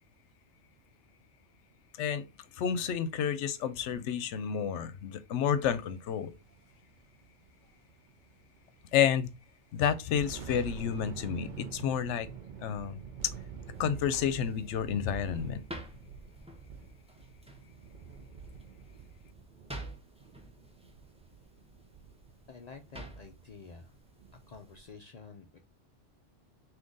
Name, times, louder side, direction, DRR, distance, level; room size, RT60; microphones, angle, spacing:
voice 1, 2.5-6.3 8.9-9.3 9.7-12.3 12.6-13.0 13.8-15.6, left 8 dB, 75° left, 0.9 m, -30 dB
sound 1, 6.1-8.9 9.2-9.4 9.9-24.7, right 6 dB, 55° right, 0.6 m, -47 dB
sound 2, 13.7-24.9, right 1 dB, 10° right, 0.4 m, -50 dB
voice 2, 22.5-23.9 24.5-25.6, left 4 dB, 60° left, 0.4 m, -49 dB
3.7 x 2.8 x 3.8 m
omnidirectional pair, 1.2 m